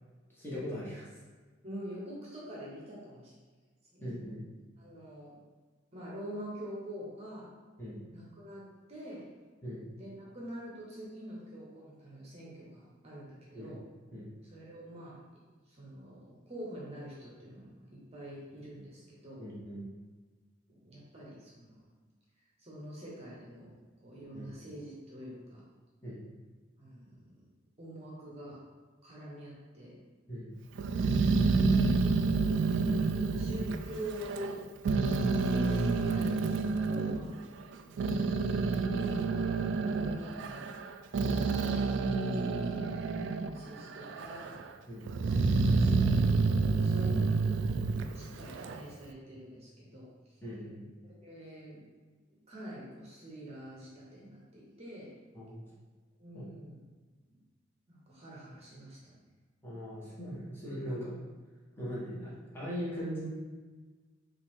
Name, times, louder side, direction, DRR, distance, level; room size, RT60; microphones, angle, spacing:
voice 1, 0.3-1.1 4.0-4.4 7.8-8.0 9.6-9.8 13.5-13.7 14.1-14.3 19.4-19.9 24.3-24.5 26.0-26.2 30.3-30.5 38.7-38.9 41.2-41.4 44.9-45.1 50.4-50.9 55.3-55.6 56.3-56.5 59.6-61.1 61.8-63.3, equal, 10° left, -8 dB, 1.3 m, -40 dB
voice 2, 1.6-3.3 3.9-4.1 4.8-5.4 5.9-7.5 8.1-9.3 9.9-13.8 14.4-15.2 15.7-19.4 20.7-21.8 22.6-23.7 24.0-25.6 26.8-27.3 27.8-28.6 29.0-30.0 32.7-34.6 35.5-36.4 36.8-37.4 37.8-38.1 39.1-40.8 42.2-42.9 43.5-44.6 45.6-50.1 51.0-51.8 52.5-55.1 56.2-56.8 57.9-59.2, equal, 35° right, -4 dB, 0.9 m, -46 dB
Growling, 30.8-34.5 34.8-37.2 37.7-43.6 43.9-44.6 45.1-48.8, right 4 dB, 65° right, 0.3 m, -28 dB
5.8 x 2.5 x 3.6 m, 1.4 s
head